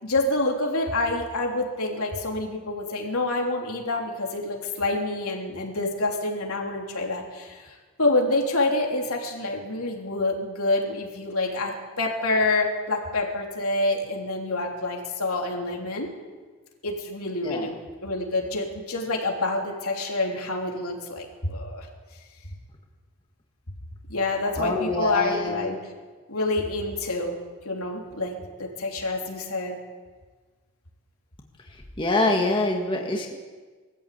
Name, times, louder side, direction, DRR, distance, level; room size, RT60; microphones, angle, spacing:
voice 1, 0.0-16.1 16.8-21.9 24.1-25.7 26.3-27.4 27.7-29.8, left 2 dB, 80° left, 0 dB, 3.5 m, -27 dB
voice 2, 17.4-17.7 24.6-25.8 32.0-33.4, left 2 dB, 20° left, 1 dB, 1.9 m, -25 dB
22.0 x 14.5 x 8.5 m, 1.4 s
head